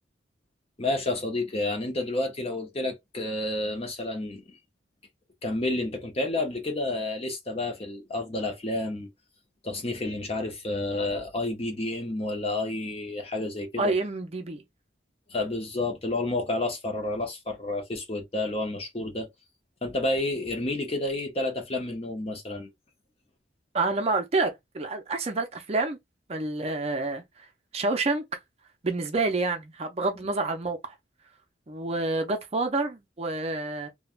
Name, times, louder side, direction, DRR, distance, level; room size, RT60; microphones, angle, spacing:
voice 1, 0.8-4.6 5.4-9.1 9.6-13.9 15.3-19.3 19.8-22.7, left 2 dB, 30° left, 0.7 m, -30 dB
voice 2, 13.8-14.6 23.7-26.0 26.3-27.5 27.7-28.2 28.8-30.9 31.7-33.9, right 3 dB, 35° right, 0.5 m, -28 dB
3.2 x 2.2 x 2.4 m
head